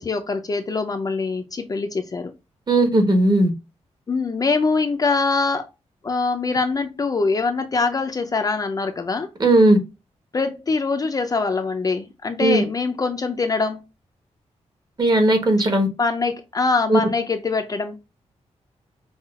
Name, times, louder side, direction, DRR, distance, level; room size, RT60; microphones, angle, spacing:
voice 1, 0.0-2.3 4.1-5.7 6.0-9.3 10.3-13.8 16.0-18.0, left 4 dB, 30° left, 0.4 m, -23 dB
voice 2, 2.7-3.5 9.4-9.8 12.4-12.6 15.0-15.9 16.9-17.0, right 1 dB, 35° right, 1.1 m, -16 dB
5.6 x 2.3 x 2.3 m
wide cardioid pair, 155°, 12 cm